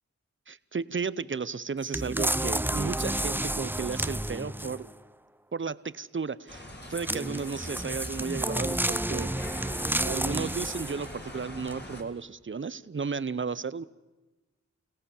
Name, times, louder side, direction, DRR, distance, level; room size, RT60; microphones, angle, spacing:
voice 1, 0.5-4.9 5.5-9.3 10.0-13.8, right 5 dB, 40° right, 18 dB, 0.8 m, -34 dB
sound 1, 1.9-4.9 6.9-11.1 11.7-11.8, right 1 dB, 5° right, 0.6 m, -31 dB
sound 2, 6.5-12.0, left 1 dB, 35° left, 3.8 m, -43 dB
29.5 x 17.0 x 7.2 m, 1.1 s
cardioid pair, 50°, 30 cm